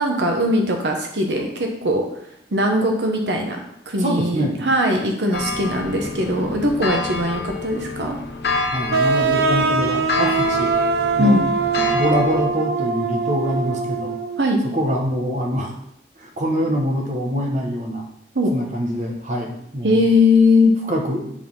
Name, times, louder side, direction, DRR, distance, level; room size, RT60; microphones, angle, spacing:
voice 1, 0.0-2.0 2.5-3.6 3.9-8.2 11.2-11.4 14.4-14.6 18.3-18.5 19.8-20.7, left 2 dB, 80° right, 2 dB, 1.1 m, -20 dB
voice 2, 4.0-4.6 8.7-10.7 11.2-11.4 11.9-14.1 14.6-15.7 16.2-18.1 18.5-20.0 20.9-21.3, equal, 45° right, 2 dB, 1.3 m, -24 dB
sound 1, 5.3-12.4, left 4 dB, 65° left, 0.8 m, -28 dB
sound 2, 8.9-14.4, right 4 dB, 60° right, 0.6 m, -22 dB
7.4 x 4.2 x 5.6 m, 0.76 s
head